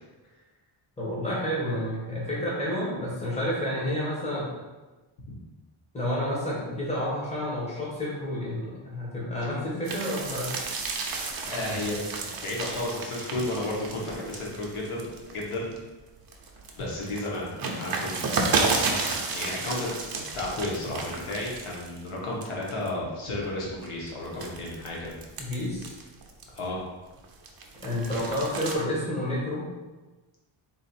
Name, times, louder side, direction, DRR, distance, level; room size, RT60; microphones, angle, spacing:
voice 1, 1.0-4.5 5.9-10.5 25.4-26.0 27.8-29.7, left 1 dB, 15° left, -6 dB, 1.3 m, -30 dB
sound 1, 9.8-15.8 16.2-22.1 22.4-22.9 23.5-26.8 27.2-28.7, right 3 dB, 45° right, 0.6 m, -32 dB
voice 2, 11.2-15.0 15.3-15.7 16.8-18.2 18.6-18.8 19.3-25.1 26.5-26.8, left 1 dB, 85° left, -3 dB, 1.2 m, -33 dB
4.0 x 2.5 x 4.2 m, 1.2 s
wide cardioid pair, 130°, 50 cm